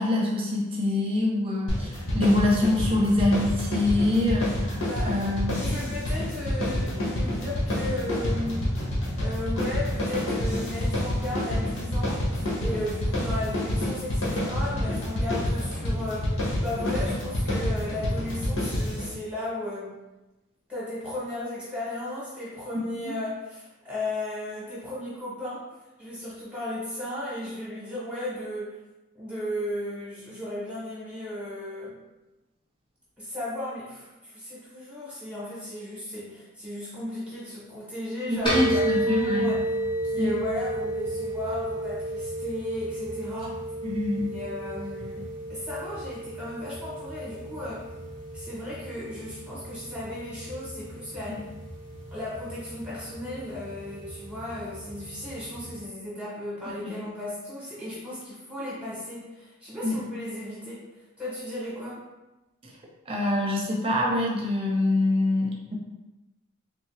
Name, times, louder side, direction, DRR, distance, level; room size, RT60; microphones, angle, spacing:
voice 1, 0.0-5.6 38.3-39.5 40.2-40.3 43.8-44.3 56.8-56.9 59.8-60.0 63.1-65.8, left 2 dB, 25° right, -2 dB, 0.6 m, -25 dB
sound 1, 1.7-19.1, left 1 dB, 75° left, 1.2 m, -28 dB
voice 2, 4.8-5.2 5.6-8.7 9.2-20.0 20.7-25.6 26.0-28.8 29.1-32.0 33.2-39.6 40.0-43.6 44.3-47.9 48.3-51.4 52.1-60.8 61.2-62.0, left 1 dB, 5° right, -8 dB, 0.9 m, -35 dB
sound 2, 38.5-55.8, right 1 dB, 25° left, 0.8 m, -33 dB
3.4 x 2.8 x 3.0 m, 1.1 s
head